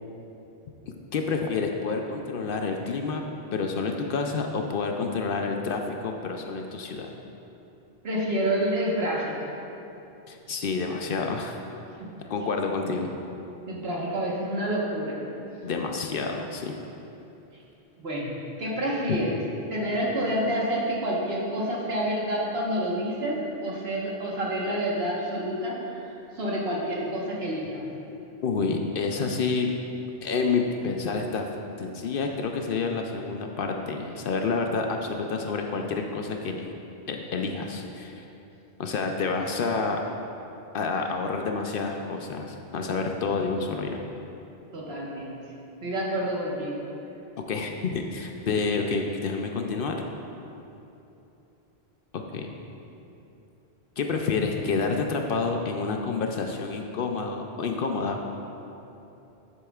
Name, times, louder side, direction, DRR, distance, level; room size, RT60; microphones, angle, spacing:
voice 1, 1.1-3.2 3.5-7.1 10.3-11.6 12.3-13.1 15.6-16.8 28.4-29.7 30.2-36.7 37.1-38.2 38.8-40.0 40.7-44.0 47.5-50.0 52.1-52.5 54.0-58.3, left 4 dB, 60° left, 3 dB, 0.7 m, -29 dB
voice 2, 8.0-9.3 12.0-12.1 12.8-12.9 13.7-15.2 18.0-18.3 18.6-19.3 19.7-26.0 26.4-27.9 44.7-45.4 45.8-46.8, right 1 dB, 70° right, -4 dB, 1.5 m, -28 dB
9.9 x 7.9 x 2.4 m, 2.9 s
omnidirectional pair, 1.1 m